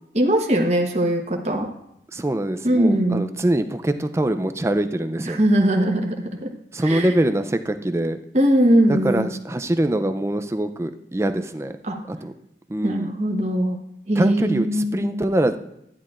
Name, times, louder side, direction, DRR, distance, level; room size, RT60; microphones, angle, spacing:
voice 1, 0.1-1.7 2.6-3.2 5.3-6.5 6.8-7.1 8.3-9.3 11.9-12.0 12.8-13.8 14.1-15.1, right 1 dB, 40° right, 2 dB, 1.1 m, -20 dB
voice 2, 2.1-5.4 6.7-8.2 8.9-11.8 12.1-12.3 12.7-13.1 14.2-15.6, right 1 dB, 15° right, 9 dB, 0.4 m, -23 dB
13.0 x 10.0 x 2.5 m, 0.80 s
head